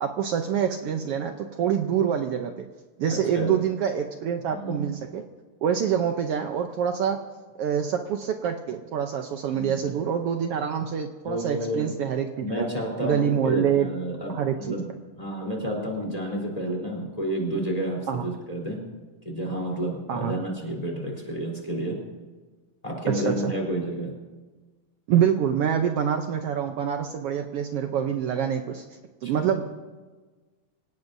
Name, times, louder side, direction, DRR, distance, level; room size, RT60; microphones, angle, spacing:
voice 1, 0.0-2.7 3.0-5.2 5.6-7.2 7.6-12.7 13.0-13.9 14.3-14.7 18.1-18.3 20.1-20.3 23.1-23.5 25.1-28.8 29.2-29.7, right 8 dB, 85° right, 5 dB, 1.3 m, -26 dB
voice 2, 3.1-3.6 4.5-5.0 9.5-9.8 11.2-11.9 12.4-14.8 15.2-18.8 19.2-22.0 22.8-24.1 29.2-29.5, right 1 dB, 10° left, -1 dB, 3.5 m, -30 dB
26.5 x 17.5 x 2.7 m, 1.3 s
omnidirectional pair, 3.7 m